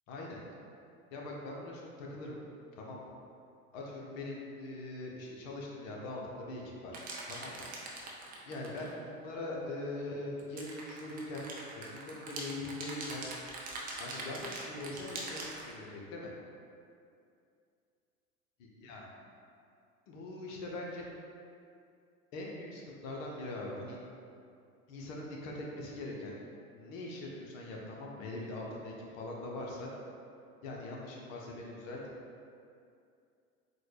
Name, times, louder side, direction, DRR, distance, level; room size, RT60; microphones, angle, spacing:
voice 1, 0.1-0.4 1.1-2.4 2.8-3.1 3.7-7.0 7.3-7.7 8.4-11.5 11.7-13.2 14.0-16.3 18.6-19.1 20.1-21.0 22.3-24.0 24.9-26.3 26.7-29.9 30.6-32.0, left 2 dB, 60° left, -2 dB, 0.8 m, -42 dB
sound 1, 6.9-8.9 10.4-15.7, right 2 dB, 20° right, 0.4 m, -42 dB
3.8 x 2.2 x 3.3 m, 2.4 s
hypercardioid pair, 85°, 44 cm